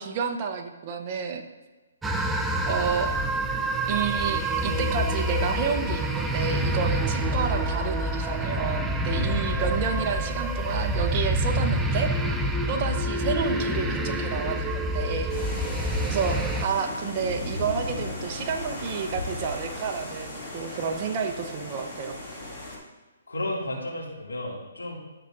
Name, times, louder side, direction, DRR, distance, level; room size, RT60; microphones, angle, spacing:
voice 1, 0.0-1.4 2.7-3.1 3.9-12.1 12.7-15.3 16.1-22.2, right 6 dB, 35° right, 4 dB, 0.9 m, -30 dB
sound 1, 2.0-16.7, right 1 dB, 5° right, 0.5 m, -27 dB
voice 2, 9.3-9.6 16.3-16.5 23.3-25.0, left 1 dB, 90° left, -2 dB, 2.3 m, -33 dB
sound 2, 15.3-22.8, left 2 dB, 15° left, 2.5 m, -36 dB
12.5 x 5.9 x 2.6 m, 1.2 s
hypercardioid pair, 145°, 0 cm